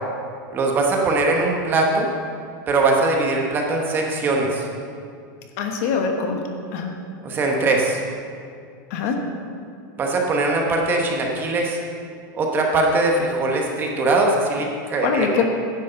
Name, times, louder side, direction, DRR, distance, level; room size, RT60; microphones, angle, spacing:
voice 1, 0.5-2.1 2.7-4.7 7.2-8.0 10.0-11.8 12.3-15.4, right 2 dB, 20° right, 0 dB, 1.0 m, -21 dB
voice 2, 5.6-6.4 6.7-6.9 8.9-9.2 15.0-15.4, left 5 dB, 45° left, 3 dB, 1.2 m, -23 dB
10.5 x 6.3 x 6.7 m, 2.3 s
supercardioid pair, 170°, 11 cm